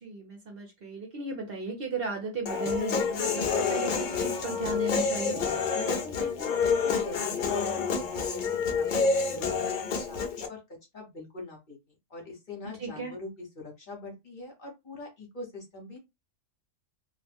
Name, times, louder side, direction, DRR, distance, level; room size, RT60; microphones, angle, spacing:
voice 1, 0.0-5.4 12.8-13.1, right 2 dB, 55° right, 0.8 m, -35 dB
Human voice, 2.5-10.5, left 5 dB, 60° left, 0.5 m, -28 dB
voice 2, 5.6-8.9 9.1-10.6 10.9-11.8 12.1-16.0, left 2 dB, 45° left, 1.0 m, -42 dB
2.4 x 2.0 x 3.4 m
omnidirectional pair, 1.3 m